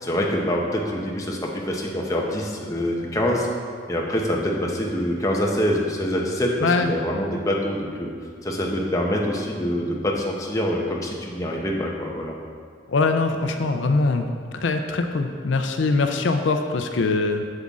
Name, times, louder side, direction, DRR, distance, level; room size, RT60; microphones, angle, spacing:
voice 1, 0.0-3.5 3.9-8.1 8.4-12.3, equal, 15° left, -2 dB, 0.8 m, -25 dB
voice 2, 12.9-14.3 14.5-17.4, left 3 dB, 75° left, 6 dB, 0.5 m, -22 dB
7.9 x 7.3 x 3.6 m, 2.1 s
head